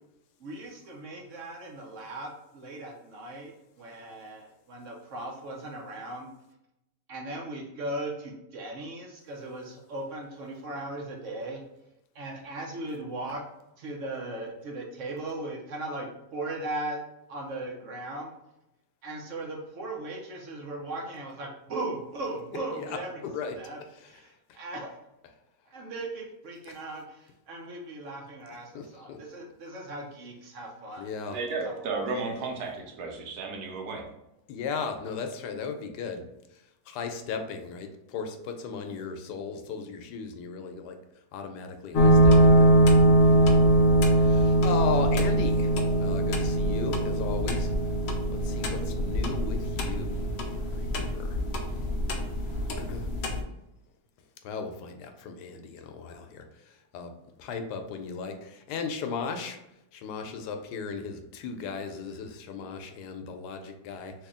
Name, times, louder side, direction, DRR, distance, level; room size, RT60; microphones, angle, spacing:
voice 1, 0.4-3.5 3.8-6.3 7.1-11.6 12.1-13.4 13.8-17.0 17.3-18.3 19.0-23.1 23.6-23.8 24.1-25.0 25.7-31.1 31.6-31.9, right 2 dB, 60° right, -1 dB, 0.9 m, -38 dB
voice 2, 22.5-23.0 23.2-23.6 24.0-24.1 28.7-29.2 31.0-31.4 34.5-36.2 36.9-40.9 41.3-42.7 44.2-45.7 46.0-47.7 48.4-50.1 50.5-51.4 52.8-53.0 54.4-56.4 56.9-57.1 57.4-59.6 59.9-64.1, left 5 dB, 90° left, 5 dB, 1.2 m, -36 dB
voice 3, 31.3-34.0, right 3 dB, 75° right, 1 dB, 1.2 m, -33 dB
sound 1, 41.9-53.4, right 1 dB, 70° left, 0.6 m, -22 dB
3.1 x 2.7 x 3.6 m, 0.87 s
omnidirectional pair, 1.7 m